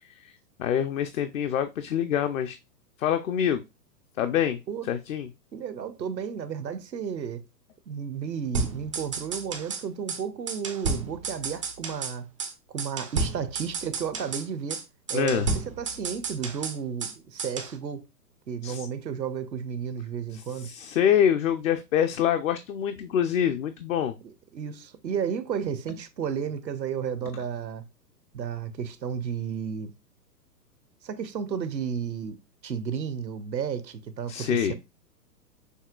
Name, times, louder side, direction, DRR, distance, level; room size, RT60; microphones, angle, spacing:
voice 1, 0.6-2.6 3.0-3.6 4.2-5.3 15.1-15.5 18.6-18.9 20.3-24.1 34.3-34.7, left 9 dB, 55° left, 0.6 m, -26 dB
voice 2, 5.5-7.4 7.9-12.3 12.7-14.8 15.1-18.1 18.5-20.7 24.2-27.8 28.3-29.9 31.0-32.4 32.6-34.7, right 7 dB, 85° right, 0.9 m, -33 dB
sound 1, 8.5-9.8 10.1-10.2 10.5-12.1 12.4-12.5 12.8-14.4 14.7-14.8 15.1-17.1 17.4-17.7, right 4 dB, 20° right, 0.3 m, -32 dB
6.4 x 2.8 x 2.3 m
figure-of-eight pair, 115°, 50 cm